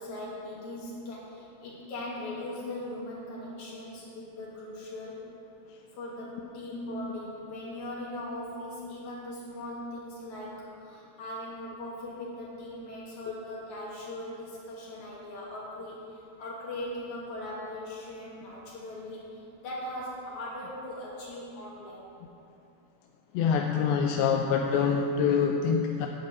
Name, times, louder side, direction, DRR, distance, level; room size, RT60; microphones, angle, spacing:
voice 1, 0.0-5.2 5.9-22.1, left 1 dB, 50° left, -6 dB, 3.4 m, -39 dB
voice 2, 23.3-26.1, left 6 dB, 80° left, 2 dB, 2.2 m, -25 dB
10.5 x 6.1 x 8.1 m, 2.7 s
omnidirectional pair, 4.7 m